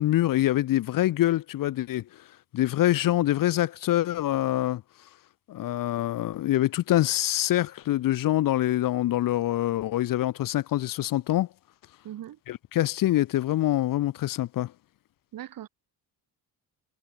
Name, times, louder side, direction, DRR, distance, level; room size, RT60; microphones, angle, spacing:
voice 1, 0.0-2.0 2.5-4.8 5.5-11.5 12.5-14.7, left 14 dB, 55° left, 0.7 m, -25 dB
voice 2, 12.0-12.4 15.3-15.7, right 12 dB, 55° right, 2.2 m, -39 dB
cardioid pair, 175°, 40 cm